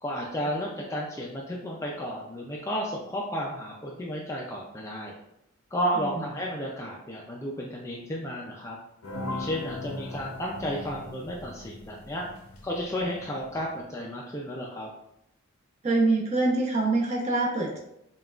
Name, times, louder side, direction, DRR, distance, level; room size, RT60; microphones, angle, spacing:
voice 1, 0.0-5.1 5.7-8.8 9.3-12.3 12.6-14.9, equal, 15° left, -2 dB, 0.3 m, -32 dB
sound 1, 9.0-13.7, left 2 dB, 75° left, 0.6 m, -39 dB
voice 2, 15.8-17.8, right 2 dB, 30° right, -2 dB, 0.7 m, -24 dB
5.5 x 2.3 x 2.4 m, 0.81 s
head